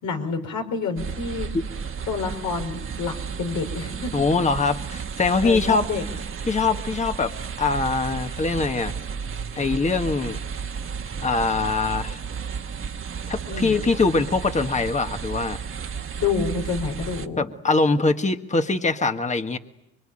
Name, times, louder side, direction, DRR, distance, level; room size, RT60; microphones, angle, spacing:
voice 1, 0.0-1.5 2.1-4.1 5.4-6.0 13.5-13.8 16.2-17.4, left 5 dB, 75° left, 4 dB, 5.1 m, -28 dB
sound 1, 1.0-17.3, right 6 dB, 45° right, 1.4 m, -33 dB
voice 2, 4.1-5.9 6.5-8.9 9.5-10.4 11.2-12.2 13.3-15.6 17.4-19.6, left 3 dB, 25° left, 8 dB, 1.5 m, -23 dB
25.0 x 24.0 x 8.9 m, 0.83 s
cardioid pair, 90°, 30 cm